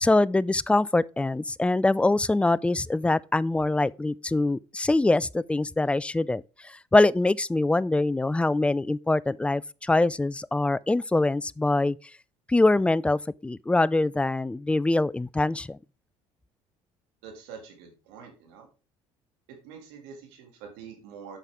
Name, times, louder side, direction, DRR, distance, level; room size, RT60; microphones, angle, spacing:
voice 1, 0.0-12.0 12.5-15.8, left 2 dB, 10° left, 0.3 m, -24 dB
voice 2, 17.2-18.7 19.5-21.4, right 6 dB, 90° right, 2.7 m, -45 dB
8.2 x 5.8 x 3.7 m
supercardioid pair, 80°, 12 cm